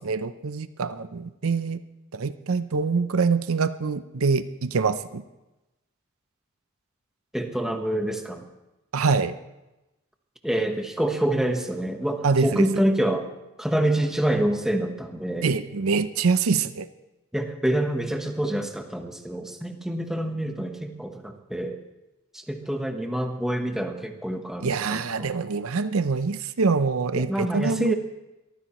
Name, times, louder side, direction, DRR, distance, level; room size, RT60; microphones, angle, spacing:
voice 1, 0.0-1.8 2.1-5.2 8.9-9.4 12.2-12.7 15.4-16.9 24.6-27.9, right 4 dB, 75° right, 12 dB, 0.6 m, -25 dB
voice 2, 7.3-8.5 10.4-13.3 13.6-15.5 17.3-21.8 22.3-25.3 27.2-28.0, right 1 dB, ahead, 4 dB, 1.0 m, -26 dB
24.0 x 14.5 x 3.1 m, 0.99 s
head